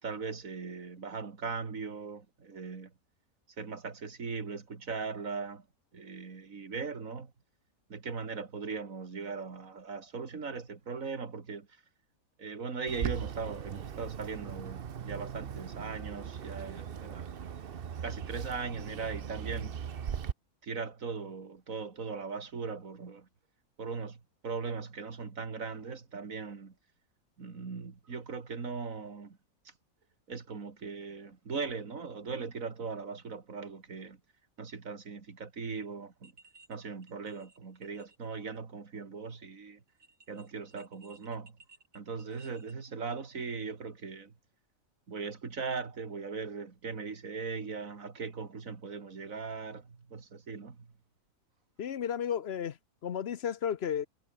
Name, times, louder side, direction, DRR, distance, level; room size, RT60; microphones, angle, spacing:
voice 1, 0.0-2.9 3.6-5.6 5.9-7.3 7.9-11.7 12.4-17.3 18.0-19.8 20.6-23.3 23.8-26.7 27.4-29.4 30.3-34.2 34.6-36.3 36.7-39.8 40.3-41.5 41.9-44.3 45.1-50.9, right 5 dB, 65° right, 2.7 m, -39 dB
Bird, 12.9-20.3, right 8 dB, 45° right, 0.9 m, -39 dB
sound 1, 36.2-36.7 37.0-38.3 38.6-38.7 39.9-42.7, right 4 dB, 80° right, 3.8 m, -59 dB
voice 2, 51.8-52.8 53.0-54.1, left 8 dB, 50° left, 0.9 m, -33 dB
omnidirectional pair, 1.6 m